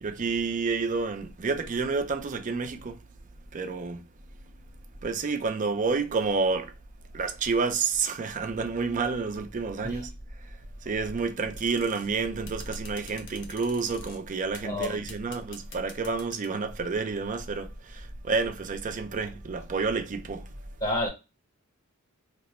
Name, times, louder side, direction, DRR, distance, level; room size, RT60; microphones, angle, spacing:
voice 1, 0.0-3.0 3.5-4.0 5.0-6.7 7.1-10.1 10.8-20.5, right 4 dB, 35° right, 0.5 m, -29 dB
sound 1, 11.5-12.1 12.5-14.2 14.5-16.6, left 5 dB, 55° left, 0.7 m, -47 dB
voice 2, 14.6-15.1 20.8-21.1, left 1 dB, 20° left, 0.8 m, -29 dB
2.9 x 2.1 x 4.1 m
head